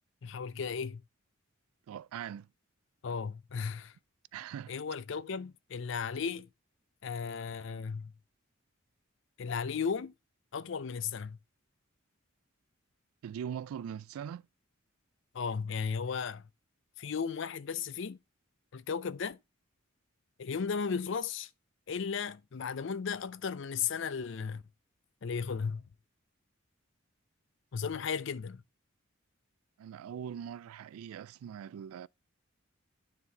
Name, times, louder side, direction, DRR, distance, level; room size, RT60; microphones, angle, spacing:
voice 1, 0.2-1.0 3.0-4.0 4.7-6.5 7.0-8.1 9.4-10.1 10.5-11.4 15.3-16.5 17.0-18.2 18.7-19.4 20.4-21.5 21.9-24.6 25.2-25.8 27.7-28.6, left 6 dB, 60° left, 0.4 m, -35 dB
voice 2, 1.9-2.5 4.3-4.7 13.2-14.5 29.8-32.1, right 8 dB, 85° right, 0.3 m, -41 dB
9.7 x 4.1 x 4.0 m
head